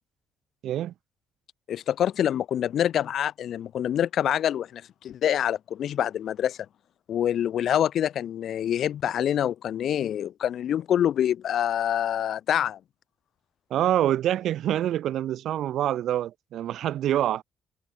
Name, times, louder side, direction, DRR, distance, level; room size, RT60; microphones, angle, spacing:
voice 1, 0.6-0.9 13.7-17.4, right 12 dB, 75° right, 0.9 m, -26 dB
voice 2, 1.7-6.6 7.1-12.8, left 10 dB, 70° left, 0.5 m, -26 dB
cardioid pair, 90°, 0 cm